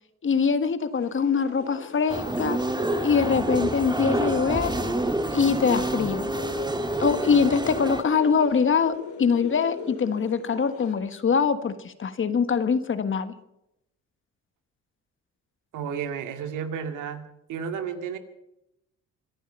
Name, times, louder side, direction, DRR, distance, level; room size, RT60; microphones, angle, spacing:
voice 1, 0.2-2.6 3.0-4.7 5.3-6.3 7.0-13.3, left 6 dB, 40° left, 11 dB, 1.4 m, -23 dB
sound 1, 0.9-10.9, left 6 dB, 70° left, 4.8 m, -40 dB
Soviet Arcade - Champion - Game, 2.1-8.0, right 2 dB, 15° right, 1.6 m, -28 dB
voice 2, 15.7-18.2, right 7 dB, 85° right, 7 dB, 2.2 m, -32 dB
26.5 x 9.4 x 5.6 m, 0.82 s
cardioid pair, 90°, 30 cm